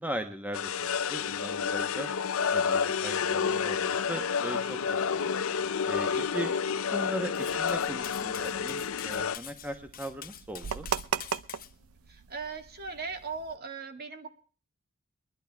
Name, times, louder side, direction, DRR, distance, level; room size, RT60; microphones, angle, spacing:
voice 1, 0.0-2.1 2.5-5.4 5.9-6.6 6.9-10.9, equal, 10° right, 6 dB, 1.1 m, -38 dB
sound 1, 0.5-9.4, left 6 dB, 70° left, 0.6 m, -30 dB
Cutlery silverware, 7.3-11.7, left 10 dB, 40° left, 1.0 m, -46 dB
sound 2, 7.5-13.6, right 7 dB, 90° right, 0.7 m, -39 dB
voice 2, 12.1-14.3, right 4 dB, 50° right, 6 dB, 2.1 m, -38 dB
22.0 x 11.5 x 3.5 m, 0.39 s
head